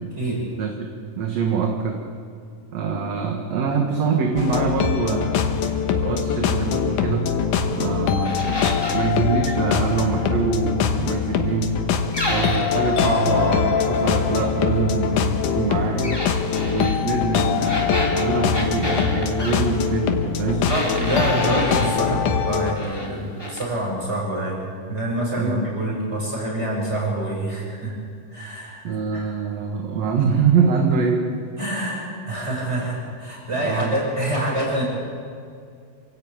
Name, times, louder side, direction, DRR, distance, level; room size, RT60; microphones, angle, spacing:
voice 1, 0.0-0.4 20.5-27.9 28.3-28.8 29.1-29.3 31.6-34.8, right 1 dB, 20° right, -3 dB, 7.3 m, -26 dB
voice 2, 0.6-2.1 2.7-5.3 5.9-7.3 7.7-8.6 8.9-11.8 12.3-16.2 16.6-20.7 25.4-25.7 28.8-31.3 33.5-33.9, right 5 dB, 60° right, 2 dB, 2.5 m, -24 dB
sound 1, 4.4-22.8, left 7 dB, 80° left, 2.7 m, -23 dB
sound 2, 8.2-9.1 12.1-13.0 16.0-17.0 17.6-19.6 20.7-22.0 22.5-23.1 23.4-23.7, left 1 dB, 10° left, 2.7 m, -29 dB
27.0 x 14.0 x 8.8 m, 2.3 s
omnidirectional pair, 3.6 m